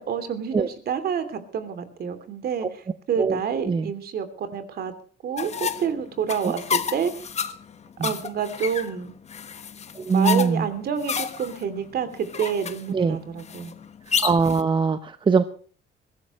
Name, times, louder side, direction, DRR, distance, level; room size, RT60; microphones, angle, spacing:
voice 1, 0.0-2.7 3.1-4.9 5.2-7.2 8.0-9.1 10.1-13.7, right 7 dB, 55° right, 10 dB, 2.9 m, -28 dB
sound 1, 5.4-14.6, left 7 dB, 35° left, 1.3 m, -31 dB
voice 2, 9.9-10.7 12.9-13.2 14.2-15.4, right 5 dB, 25° right, 10 dB, 0.9 m, -22 dB
22.0 x 16.5 x 3.1 m, 0.43 s
cardioid pair, 125°, 19 cm